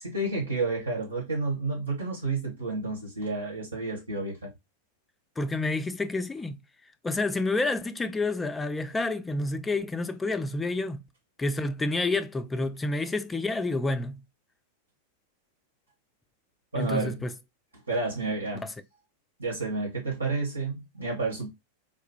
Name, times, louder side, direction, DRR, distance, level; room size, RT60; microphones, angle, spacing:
voice 1, 0.0-4.5 16.7-17.2 17.9-18.7 19.4-21.5, right 3 dB, 80° right, 1.5 m, -30 dB
voice 2, 5.4-6.6 7.0-11.0 11.4-14.2 16.8-17.3 18.6-18.7, left 2 dB, 10° left, 0.4 m, -29 dB
4.2 x 2.3 x 2.9 m
figure-of-eight pair, 90°, 0 cm